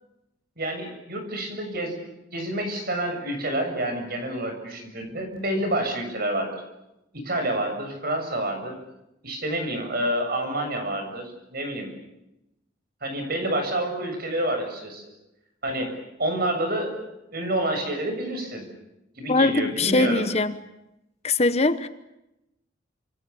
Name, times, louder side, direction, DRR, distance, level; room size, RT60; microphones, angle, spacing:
voice 1, 0.6-6.6 7.1-8.7 9.2-11.9 13.0-15.1 15.6-18.6 19.2-20.3, right 1 dB, 50° right, 6 dB, 7.3 m, -28 dB
voice 2, 19.3-20.5 21.2-21.9, left 3 dB, 35° left, 12 dB, 1.0 m, -21 dB
28.5 x 27.0 x 7.0 m, 0.90 s
head